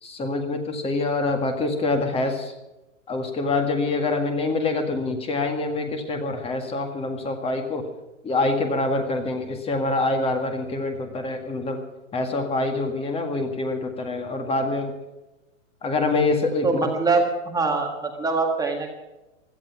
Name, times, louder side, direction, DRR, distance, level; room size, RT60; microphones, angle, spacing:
voice 1, 0.0-2.5 3.1-7.9 8.2-11.8 12.1-14.9 15.8-17.0, left 2 dB, 15° left, 5 dB, 1.8 m, -25 dB
voice 2, 16.6-18.9, right 3 dB, 10° right, 2 dB, 1.6 m, -23 dB
17.0 x 12.5 x 6.0 m, 1.0 s
hypercardioid pair, 140°, 39 cm